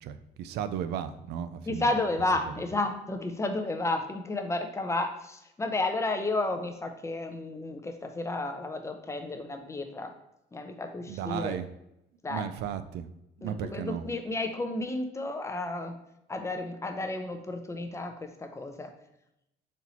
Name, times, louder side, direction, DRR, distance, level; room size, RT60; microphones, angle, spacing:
voice 1, 0.0-1.9 11.1-11.7 12.3-13.1 13.4-14.0, right 9 dB, 75° right, 11 dB, 0.4 m, -34 dB
voice 2, 1.7-10.1 10.5-11.6 12.2-12.5 13.4-16.0 16.3-18.9, left 2 dB, 15° left, 6 dB, 0.5 m, -32 dB
4.2 x 2.9 x 4.0 m, 0.83 s
cardioid pair, 110°, 17 cm